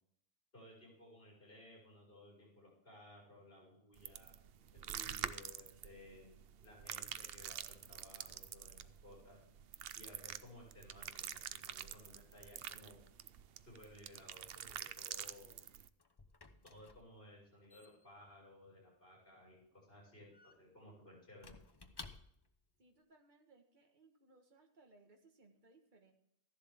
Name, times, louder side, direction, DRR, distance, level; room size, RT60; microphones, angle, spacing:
voice 1, 0.5-4.3 4.7-6.3 6.6-9.5 9.9-13.0 13.7-15.5 16.7-21.5, left 1 dB, 65° left, -3 dB, 6.0 m, -58 dB
sound 1, 4.0-15.9, right 9 dB, 70° right, 0.8 m, -47 dB
Squeak / Wood, 15.6-22.6, left 3 dB, 25° left, 0.8 m, -58 dB
voice 2, 22.8-26.1, right 3 dB, 50° right, 3 dB, 1.7 m, -66 dB
14.0 x 11.0 x 3.6 m, 0.69 s
omnidirectional pair, 1.0 m